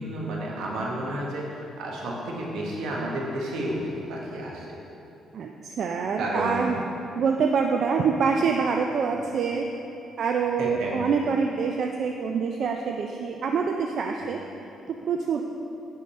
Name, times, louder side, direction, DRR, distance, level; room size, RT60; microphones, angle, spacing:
voice 1, 0.0-4.7 6.1-6.6 10.6-11.0 14.2-14.3, right 1 dB, 85° right, -3 dB, 1.3 m, -31 dB
voice 2, 5.3-6.8 7.2-9.7 10.2-14.4 15.1-15.4, right 5 dB, 60° right, 3 dB, 0.4 m, -25 dB
10.5 x 3.7 x 4.3 m, 2.9 s
cardioid pair, 90°, 0 cm